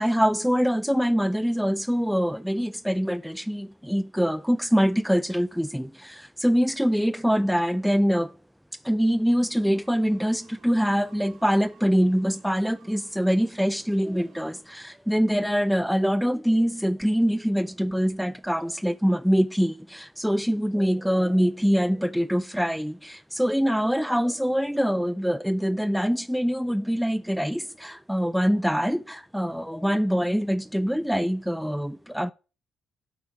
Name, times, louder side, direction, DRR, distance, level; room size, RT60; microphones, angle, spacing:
voice 1, 0.0-8.3 8.8-32.3, equal, ahead, 0.4 m, -24 dB
sound 1, 9.3-14.6, right 5 dB, 65° right, 2.4 m, -57 dB
6.1 x 6.0 x 5.7 m
cardioid pair, 90°, 0 cm